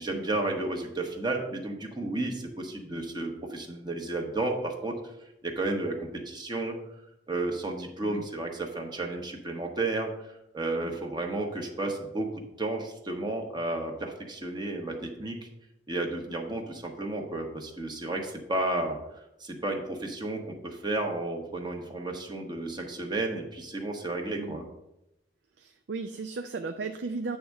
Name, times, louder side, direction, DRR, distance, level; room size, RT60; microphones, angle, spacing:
voice 1, 0.0-5.0 5.4-6.8 7.3-15.4 15.9-19.0 19.4-24.7, right 2 dB, 25° right, 2 dB, 1.0 m, -32 dB
voice 2, 25.6-27.4, right 4 dB, 75° right, 6 dB, 0.5 m, -36 dB
8.7 x 3.5 x 6.4 m, 0.86 s
head